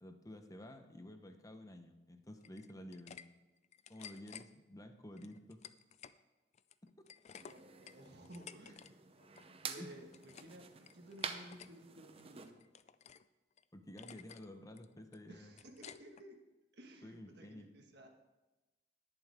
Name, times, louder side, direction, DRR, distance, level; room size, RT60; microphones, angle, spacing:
voice 1, 0.0-3.2 3.9-5.6 9.8-9.9 13.7-15.6 17.0-17.7, left 1 dB, 20° left, 6 dB, 0.8 m, -51 dB
sound 1, 2.4-3.2 3.6-4.5 5.2-6.2 6.5-8.9 9.2-9.5 9.9-10.6 10.8-11.7 12.2-13.3 13.6-13.7 14.0-14.5 14.8-16.2, left 8 dB, 40° left, 0.3 m, -55 dB
sound 2, 7.3-12.5, right 6 dB, 30° right, 0.7 m, -48 dB
voice 2, 7.4-9.0 9.6-12.6 15.3-16.4 16.7-18.1, right 1 dB, 60° right, 2 dB, 1.6 m, -55 dB
19.5 x 7.2 x 3.5 m, 1.1 s
head